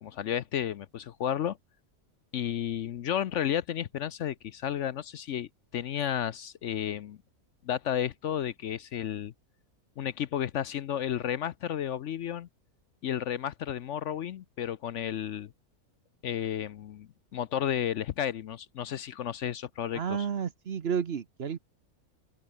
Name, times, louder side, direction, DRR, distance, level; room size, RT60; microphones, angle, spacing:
voice 1, 0.0-1.6 2.3-7.2 7.6-9.3 10.0-12.5 13.0-15.5 16.2-20.3, left 10 dB, 65° left, 0.9 m, -32 dB
voice 2, 19.9-21.6, right 7 dB, 50° right, 1.0 m, -31 dB
open air
omnidirectional pair, 1.5 m